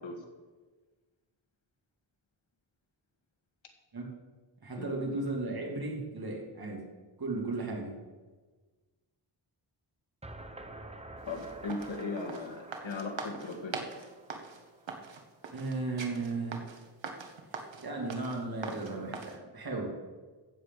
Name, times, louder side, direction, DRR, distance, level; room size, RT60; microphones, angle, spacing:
voice 1, 4.6-6.8 7.2-7.9 15.5-16.6 17.8-20.1, right 3 dB, 55° right, -1 dB, 2.9 m, -35 dB
sound 1, 10.2-15.2, right 2 dB, 15° right, 1.0 m, -48 dB
voice 2, 11.3-13.8, left 3 dB, 85° left, 3 dB, 2.1 m, -38 dB
sound 2, 11.3-19.4, right 5 dB, 90° right, 1.4 m, -42 dB
15.0 x 5.1 x 8.2 m, 1.3 s
wide cardioid pair, 120°, 44 cm